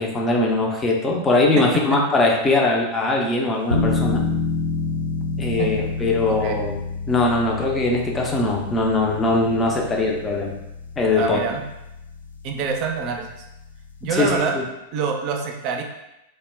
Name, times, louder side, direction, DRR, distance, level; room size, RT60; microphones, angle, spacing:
voice 1, 0.0-4.2 5.4-6.8 7.1-10.6 11.0-11.4 14.2-14.6, left 2 dB, 20° left, 0 dB, 0.5 m, -21 dB
voice 2, 1.6-2.0 5.6-5.9 6.3-6.6 11.1-11.6 12.4-13.3 14.0-14.6 14.9-15.8, right 5 dB, 45° right, 3 dB, 0.4 m, -26 dB
sound 1, 3.7-14.5, left 4 dB, 85° left, 0.3 m, -29 dB
2.2 x 2.1 x 3.3 m, 0.90 s
figure-of-eight pair, 95°, 0 cm